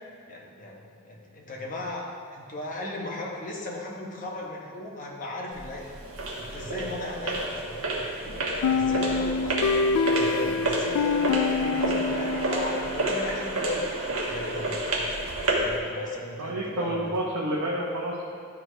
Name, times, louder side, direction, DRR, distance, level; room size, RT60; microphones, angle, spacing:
voice 1, 0.3-5.9 6.3-8.0 8.6-14.9 15.6-17.2, left 2 dB, 35° left, -2 dB, 1.0 m, -36 dB
sound 1, 5.5-15.8, right 2 dB, 65° right, 1.2 m, -30 dB
sound 2, 8.6-13.3, left 4 dB, 85° left, 0.3 m, -26 dB
voice 2, 16.4-18.2, right 1 dB, 85° right, -4 dB, 0.9 m, -29 dB
11.5 x 4.7 x 3.4 m, 2.2 s
head